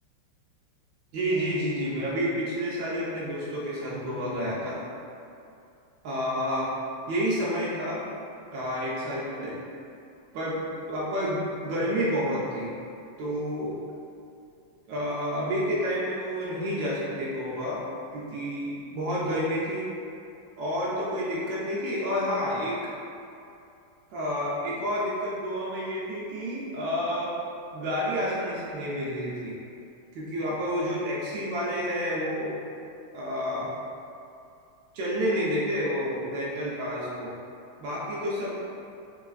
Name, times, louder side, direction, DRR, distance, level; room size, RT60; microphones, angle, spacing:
voice 1, 1.1-4.8 6.0-6.7 7.1-8.0 8.5-9.6 10.3-10.6 10.9-12.7 13.2-13.7 14.9-17.8 18.1-19.9 20.6-22.8 24.1-27.3 27.7-29.6 30.1-32.5 33.1-33.7 34.9-37.3 37.8-38.6, equal, 75° right, -7 dB, 1.1 m, -29 dB
3.7 x 3.0 x 2.4 m, 2.6 s
omnidirectional pair, 2.4 m